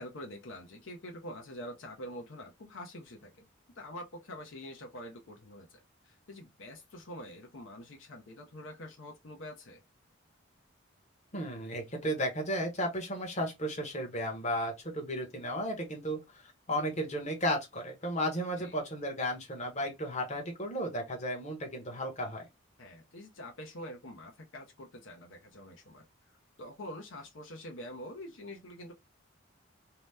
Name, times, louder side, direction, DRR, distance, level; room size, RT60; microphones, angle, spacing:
voice 1, 0.0-3.5 3.8-9.8 18.6-18.8 22.8-26.0 26.6-28.9, left 1 dB, 70° left, 0.6 m, -46 dB
voice 2, 11.3-22.5, equal, 35° left, 0.9 m, -34 dB
2.8 x 2.1 x 3.3 m
head